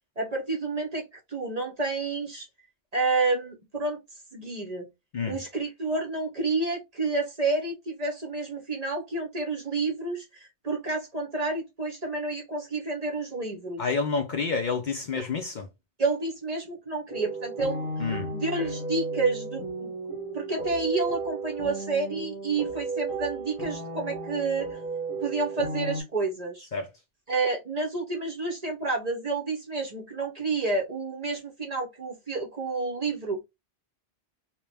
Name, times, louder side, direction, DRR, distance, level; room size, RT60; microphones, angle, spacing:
voice 1, 0.2-2.5 2.9-4.0 4.3-4.9 5.3-13.9 16.0-17.9 18.3-19.9 20.3-24.8 25.2-26.7 27.3-33.4, right 3 dB, 45° right, 0.6 m, -29 dB
voice 2, 13.8-15.7 18.0-18.3 26.7-26.9, left 4 dB, 55° left, 0.5 m, -29 dB
sound 1, 17.1-26.0, right 3 dB, 35° left, 0.9 m, -34 dB
2.9 x 2.1 x 3.3 m
omnidirectional pair, 1.2 m